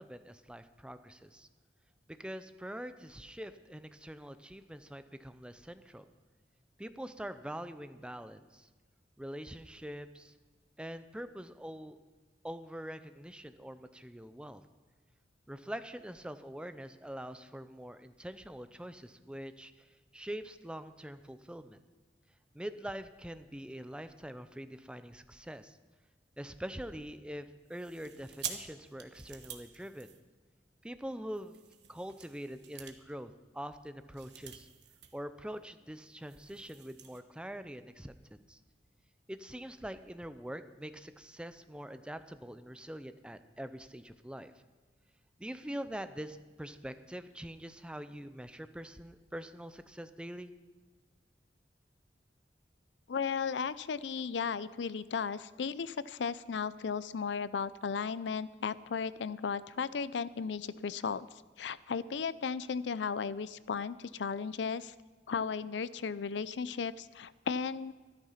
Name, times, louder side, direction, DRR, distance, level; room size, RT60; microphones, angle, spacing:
voice 1, 0.0-1.5 2.2-6.1 6.8-8.7 9.2-10.3 10.8-12.0 12.4-14.6 15.5-19.9 20.1-21.8 22.5-25.8 26.4-30.1 30.8-31.6 31.9-34.7 35.1-38.6 39.3-44.5 45.4-50.5, equal, 5° right, 11 dB, 0.6 m, -44 dB
sound 1, 27.7-30.7 31.3-35.2 35.5-35.6 35.9-37.2, right 9 dB, 70° right, 1.3 m, -48 dB
voice 2, 53.1-61.3 61.6-64.9 65.3-67.9, left 5 dB, 75° left, 17 dB, 0.5 m, -35 dB
13.5 x 12.5 x 5.8 m, 1.3 s
head